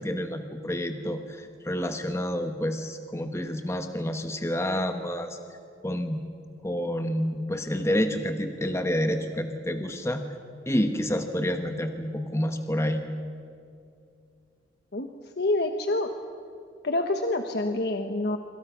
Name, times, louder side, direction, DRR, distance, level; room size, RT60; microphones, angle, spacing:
voice 1, 0.0-5.4 5.8-6.2 6.6-10.2 10.7-13.0, equal, 15° left, 6 dB, 1.2 m, -29 dB
voice 2, 14.9-16.1 16.8-18.4, left 2 dB, 65° left, 6 dB, 1.3 m, -27 dB
27.0 x 26.5 x 6.0 m, 2.5 s
head